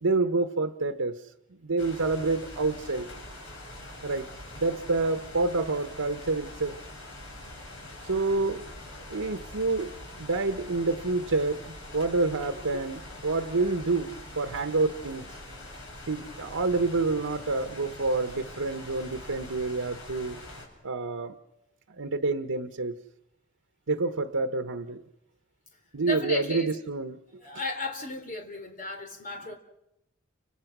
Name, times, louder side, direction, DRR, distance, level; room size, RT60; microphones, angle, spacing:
voice 1, 0.0-1.2 1.6-3.1 4.0-4.3 4.6-6.8 8.0-8.6 9.1-9.9 10.2-15.3 16.1-20.4 20.8-21.3 22.0-23.0 23.9-25.0 25.9-27.4, right 3 dB, 90° right, 7 dB, 1.1 m, -28 dB
sound 1, 1.8-20.7, left 1 dB, 60° left, 7.1 m, -44 dB
voice 2, 26.0-26.7 27.4-29.6, left 2 dB, 40° left, 4 dB, 3.7 m, -34 dB
30.0 x 26.0 x 6.2 m, 0.88 s
head